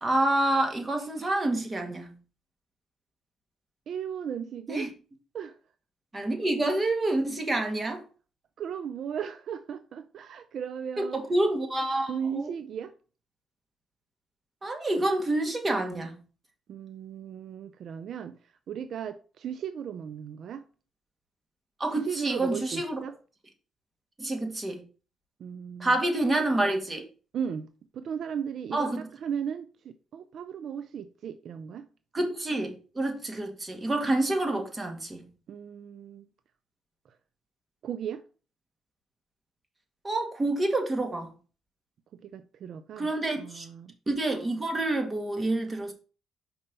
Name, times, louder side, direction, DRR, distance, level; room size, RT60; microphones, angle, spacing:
voice 1, 0.0-2.1 4.7-4.9 6.1-8.0 11.0-12.5 14.6-16.2 21.8-23.0 24.2-24.8 25.8-27.0 28.7-29.0 32.1-35.2 40.0-41.3 43.0-43.7 44.1-45.9, right 2 dB, 25° right, 1.8 m, -28 dB
voice 2, 3.9-4.9 5.3-5.6 8.6-11.2 12.1-12.9 16.7-20.7 21.9-23.2 25.4-26.0 27.3-27.7 27.9-31.9 35.5-36.2 37.1-37.2 37.8-38.2 42.1-43.1 43.4-43.9, right 8 dB, 65° right, 0.4 m, -36 dB
5.4 x 4.3 x 5.3 m
cardioid pair, 90°, 0 cm